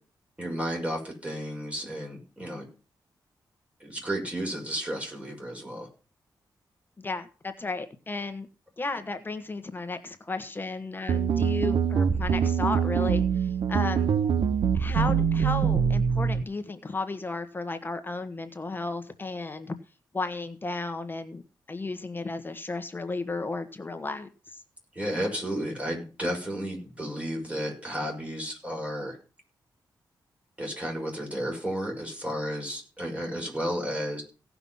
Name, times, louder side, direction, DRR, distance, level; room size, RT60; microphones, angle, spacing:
voice 1, 0.4-2.7 3.8-5.9 24.9-29.2 30.6-34.2, equal, 15° right, 1 dB, 5.9 m, -32 dB
voice 2, 7.0-8.5 8.8-14.1 14.7-19.7 20.1-21.4 21.7-24.6, left 3 dB, 25° left, 8 dB, 1.3 m, -34 dB
sound 1, 11.1-16.4, right 7 dB, 80° right, 0.9 m, -24 dB
17.0 x 6.0 x 5.5 m, 0.35 s
cardioid pair, 95°, 8 cm